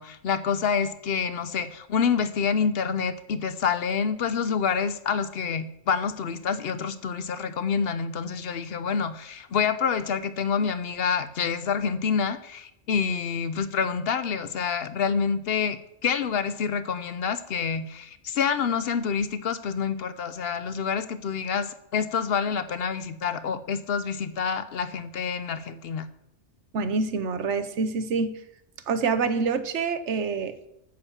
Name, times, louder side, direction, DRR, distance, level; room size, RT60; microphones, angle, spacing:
voice 1, 0.0-26.1, left 6 dB, 60° left, 13 dB, 0.8 m, -27 dB
voice 2, 26.7-28.4 28.9-30.7, right 4 dB, 80° right, 11 dB, 1.1 m, -26 dB
8.9 x 6.9 x 7.2 m, 0.82 s
omnidirectional pair, 1.2 m